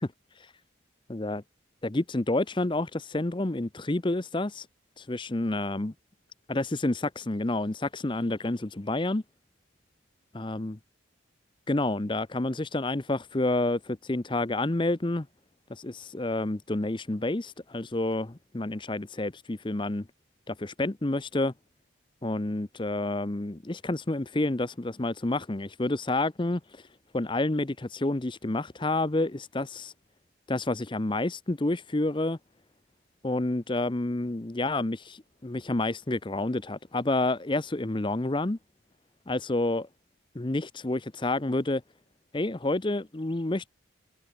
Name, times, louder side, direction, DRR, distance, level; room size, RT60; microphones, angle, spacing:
voice 1, 1.1-1.4 1.8-4.7 5.1-5.9 6.5-9.2 10.3-10.8 11.7-15.3 15.7-20.1 20.5-21.5 22.2-26.6 27.1-29.9 30.5-32.4 33.2-38.6 39.3-39.9 40.3-41.8 42.3-43.7, left 2 dB, 25° left, 0.7 m, -29 dB
head